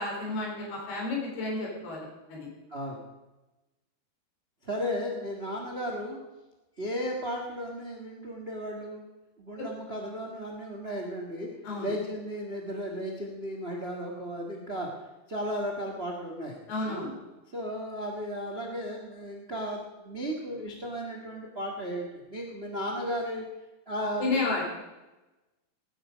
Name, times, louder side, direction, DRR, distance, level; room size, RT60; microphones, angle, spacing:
voice 1, 0.0-2.5 9.6-9.7 11.6-11.9 16.7-17.1 24.2-24.7, left 3 dB, 85° left, -2 dB, 6.0 m, -31 dB
voice 2, 2.7-3.0 4.6-6.2 6.8-9.0 9.4-11.5 11.8-14.9 15.3-16.6 16.9-17.1 17.5-23.4 23.9-24.6, equal, 60° right, 1 dB, 0.6 m, -35 dB
18.5 x 10.0 x 5.1 m, 1.1 s
omnidirectional pair, 4.4 m